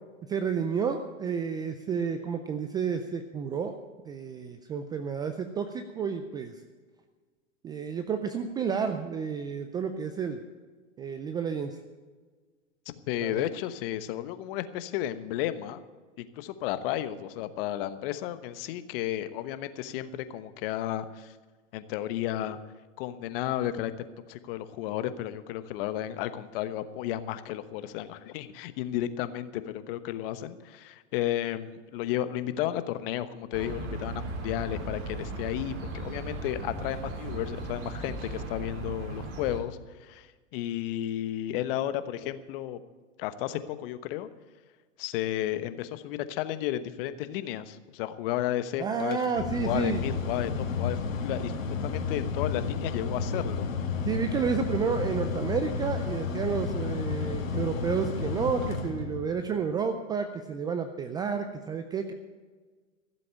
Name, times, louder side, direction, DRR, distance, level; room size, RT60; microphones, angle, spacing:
voice 1, 0.3-3.8 4.1-6.5 7.6-10.4 11.0-11.8 13.2-13.5 48.8-50.2 53.3-53.4 54.1-62.1, right 6 dB, 10° right, 8 dB, 0.4 m, -31 dB
voice 2, 13.1-15.8 16.2-21.3 21.7-22.6 23.0-23.9 24.3-42.8 43.2-44.3 45.0-49.2 49.6-53.7, left 12 dB, 45° left, 12 dB, 1.1 m, -33 dB
sound 1, 33.5-39.6, right 2 dB, 55° right, 4.2 m, -37 dB
Mechanical fan, 49.0-59.5, left 5 dB, 85° left, 2.3 m, -32 dB
15.0 x 7.7 x 8.5 m, 1.4 s
hypercardioid pair, 125°, 39 cm